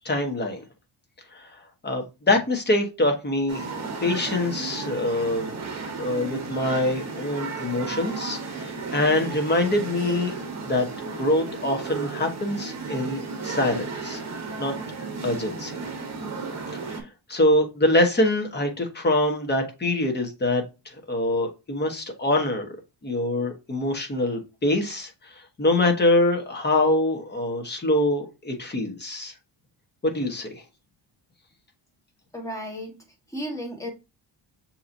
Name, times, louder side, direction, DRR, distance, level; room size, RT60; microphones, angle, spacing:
voice 1, 0.0-0.6 1.3-1.5 1.8-5.5 6.0-10.3 10.6-10.9 11.2-14.2 14.6-14.7 15.2-15.8 16.9-20.6 21.1-22.7 23.0-25.1 25.6-29.3 30.0-30.6, left 1 dB, 25° left, 1.1 m, -24 dB
sound 1, 3.5-17.0, right 4 dB, 35° right, 1.0 m, -34 dB
voice 2, 32.3-33.0 33.3-33.9, equal, 5° left, 1.4 m, -33 dB
6.4 x 2.9 x 2.6 m
cardioid pair, 135°, 44 cm